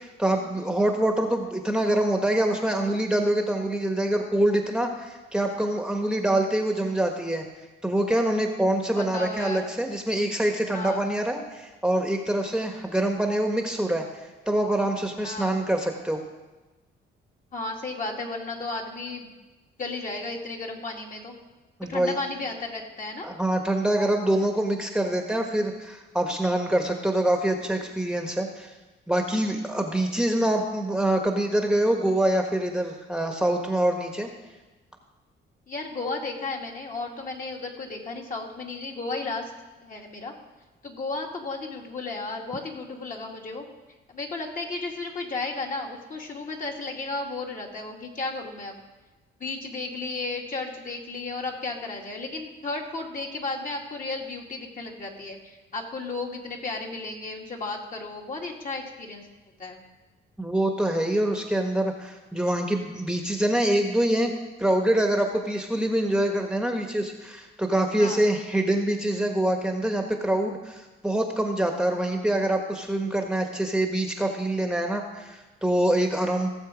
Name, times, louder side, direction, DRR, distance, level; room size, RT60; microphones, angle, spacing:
voice 1, 0.2-7.4 7.8-14.0 14.5-16.2 21.8-22.2 23.2-28.7 29.1-34.3 60.4-64.3 64.6-76.5, right 1 dB, 5° right, 3 dB, 1.3 m, -25 dB
voice 2, 9.0-9.7 10.7-11.0 15.2-15.7 17.5-19.4 19.8-21.3 21.9-23.3 35.7-39.5 39.8-40.3 40.8-43.7 44.1-48.8 49.4-59.3 59.6-59.9 68.0-68.2, left 3 dB, 45° left, 0 dB, 2.3 m, -34 dB
17.0 x 7.2 x 5.1 m, 1.2 s
cardioid pair, 90°, 20 cm